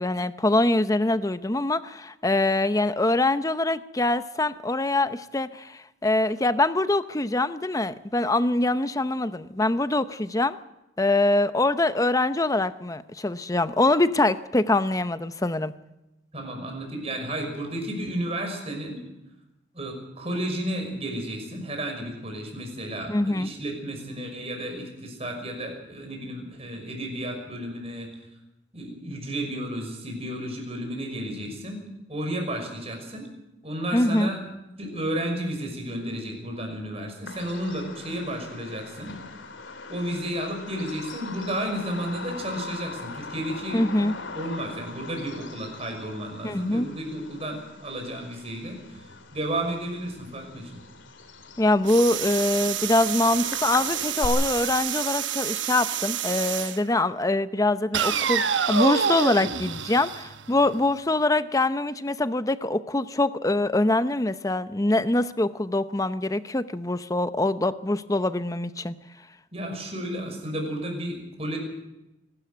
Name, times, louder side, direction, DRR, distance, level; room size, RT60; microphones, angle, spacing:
voice 1, 0.0-10.6 11.0-15.7 23.1-23.5 33.9-34.3 43.7-44.1 46.4-46.9 51.6-68.9, left 2 dB, 20° left, 13 dB, 0.7 m, -24 dB
voice 2, 16.3-19.0 19.7-28.1 28.7-31.8 32.1-33.3 33.6-34.4 34.8-39.2 39.9-49.1 49.3-50.8 69.5-71.6, right 1 dB, 35° right, 3 dB, 5.8 m, -32 dB
Bird vocalization bird call bird song, 37.3-54.3, left 3 dB, 90° left, 2.7 m, -41 dB
sound 1, 51.9-56.8 57.9-60.9, right 8 dB, 80° right, 1.1 m, -28 dB
25.0 x 13.0 x 9.2 m, 0.96 s
head